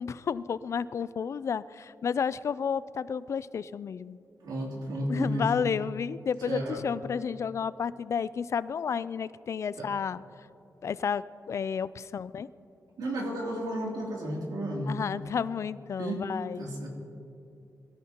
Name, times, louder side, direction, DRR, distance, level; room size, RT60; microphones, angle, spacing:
voice 1, 0.0-4.2 5.1-10.2 10.8-12.5 14.9-16.7, left 7 dB, 50° left, 17 dB, 0.3 m, -31 dB
voice 2, 4.4-5.5 6.4-6.8 9.7-9.9 13.0-14.9 16.0-16.2 16.5-16.9, right 1 dB, 90° right, -2 dB, 2.9 m, -32 dB
22.5 x 14.5 x 2.9 m, 2.6 s
wide cardioid pair, 145°, 6 cm